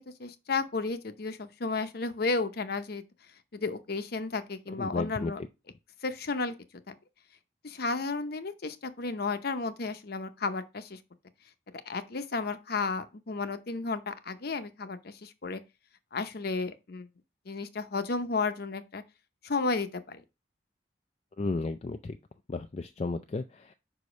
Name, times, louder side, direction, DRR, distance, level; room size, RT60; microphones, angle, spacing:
voice 1, 0.0-3.0 3.5-5.4 6.0-6.5 6.9-7.0 7.6-11.0 11.9-15.6 16.1-17.1 17.5-19.0 19.4-20.2, left 3 dB, 55° left, 0.7 m, -33 dB
voice 2, 4.8-5.3 21.4-22.2 22.5-23.7, left 3 dB, 35° left, 0.3 m, -33 dB
5.4 x 4.9 x 5.2 m
head